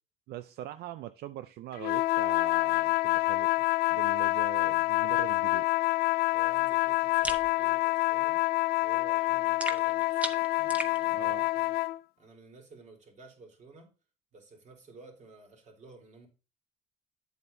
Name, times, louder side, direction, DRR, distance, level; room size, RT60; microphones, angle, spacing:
voice 1, 0.3-3.5 3.9-5.7 10.6-10.7 11.1-11.4, right 13 dB, 70° right, 0.5 m, -42 dB
sound 1, 1.8-12.0, left 18 dB, 65° left, 0.4 m, -27 dB
voice 2, 6.3-8.4 8.8-11.7 12.2-13.9 14.3-16.3, right 3 dB, 45° right, 3.7 m, -53 dB
sound 2, 7.2-7.5 9.6-11.0, right 1 dB, 10° right, 1.2 m, -35 dB
9.3 x 8.0 x 2.7 m
cardioid pair, 110°, 17 cm